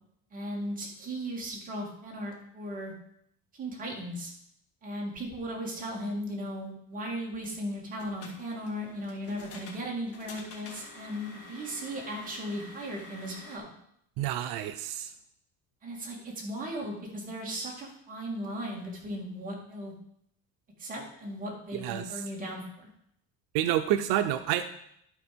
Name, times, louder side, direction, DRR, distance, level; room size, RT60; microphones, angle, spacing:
voice 1, 0.3-2.9 3.5-4.3 4.8-13.7 15.8-19.9 20.8-22.9, equal, 20° right, -2 dB, 2.1 m, -37 dB
sound 1, 7.8-13.6, left 2 dB, 40° left, 1.7 m, -48 dB
voice 2, 14.2-15.1 21.8-22.0 23.5-24.6, right 12 dB, 85° right, 9 dB, 0.6 m, -28 dB
11.5 x 4.3 x 5.2 m, 0.73 s
cardioid pair, 170°, 37 cm